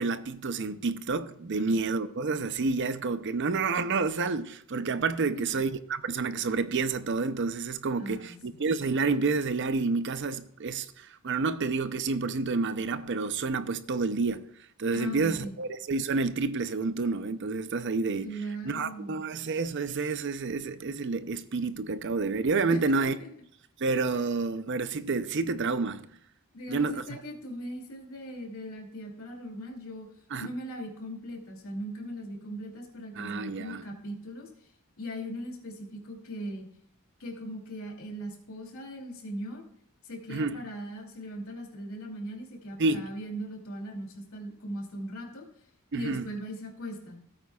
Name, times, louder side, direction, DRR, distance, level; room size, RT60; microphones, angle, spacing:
voice 1, 0.0-14.5 14.8-18.3 18.6-23.1 23.8-26.1 26.7-27.2 30.3-30.5 33.2-33.8 40.3-40.6 42.8-43.1 45.9-46.3, right 4 dB, 55° right, 0.6 m, -29 dB
voice 2, 8.0-8.3 14.9-15.5 18.2-19.2 22.7-23.3 26.5-30.1 30.4-34.5 35.0-36.7 37.2-39.6 40.0-45.5 45.9-47.2, equal, 75° left, 2.7 m, -39 dB
17.0 x 8.8 x 2.4 m
head